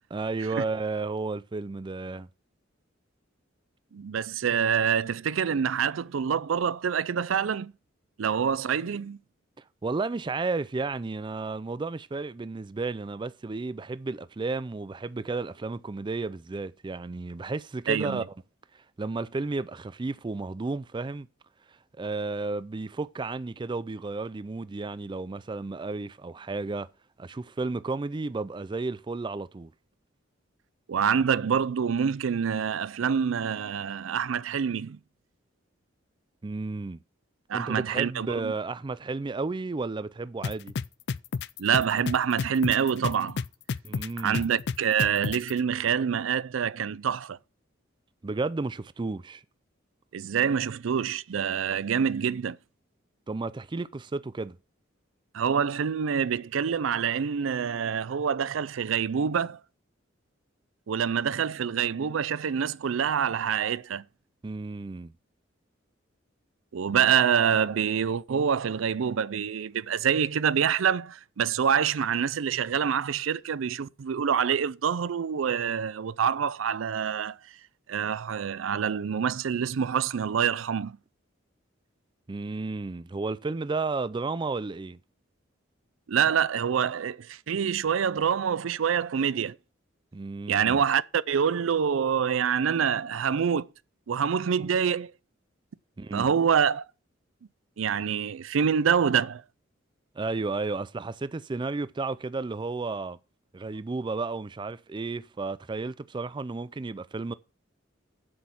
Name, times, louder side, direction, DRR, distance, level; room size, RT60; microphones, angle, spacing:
voice 1, 0.1-2.3 9.8-18.2 19.0-21.3 22.0-26.9 27.2-29.7 36.4-37.0 37.5-40.7 43.8-44.5 48.2-49.4 53.3-54.6 64.4-65.1 82.3-85.0 90.1-90.8 96.0-96.3 100.2-103.2 103.5-107.3, right 3 dB, 25° right, 0.4 m, -32 dB
voice 2, 3.9-7.7 8.2-9.2 17.9-18.2 30.9-35.0 37.5-38.5 41.6-43.4 44.2-47.4 50.1-52.6 55.3-59.6 60.9-64.0 66.7-77.4 77.9-81.0 86.1-89.5 90.5-93.7 94.1-95.1 96.1-96.9 97.8-99.4, right 7 dB, 85° right, 0.4 m, -26 dB
sound 1, 40.4-45.5, left 5 dB, 60° left, 0.4 m, -30 dB
7.8 x 6.3 x 7.0 m
head